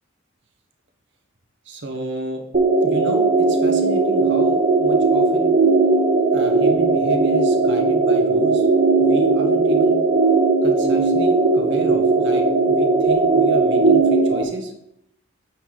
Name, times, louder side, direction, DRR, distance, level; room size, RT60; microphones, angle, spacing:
voice 1, 1.7-2.4 2.8-5.5 6.3-8.7 9.0-10.0 10.6-14.7, right 1 dB, 60° right, 4 dB, 1.2 m, -32 dB
sound 1, 2.5-14.4, right 3 dB, 40° right, 0.8 m, -17 dB
9.0 x 3.9 x 5.0 m, 0.78 s
head